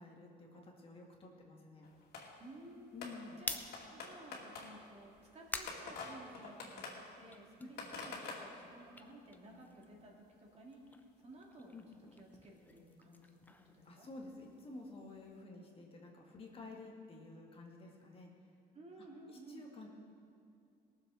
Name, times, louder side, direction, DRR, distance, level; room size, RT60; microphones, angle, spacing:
voice 1, 0.0-1.9 2.9-3.4 7.6-7.9 11.7-11.9 13.9-18.3 19.3-19.9, left 2 dB, 35° left, 0 dB, 2.0 m, -51 dB
sound 1, 1.8-2.5 3.0-9.1 10.0-10.1 10.3-10.4 10.9-11.0 12.3-12.4 12.9-13.0 14.4-14.5 15.4-15.5, left 4 dB, 70° left, 2.4 m, -48 dB
voice 2, 2.4-3.1 3.4-3.6 3.9-10.8 11.2-13.4 13.6-14.1 18.7-19.7, right 1 dB, 40° right, -1 dB, 2.6 m, -55 dB
sound 2, 3.4-6.8 7.2-10.1 10.4-14.5, left 2 dB, 10° left, 0.8 m, -49 dB
18.0 x 7.3 x 6.4 m, 2.5 s
cardioid pair, 110°, 17 cm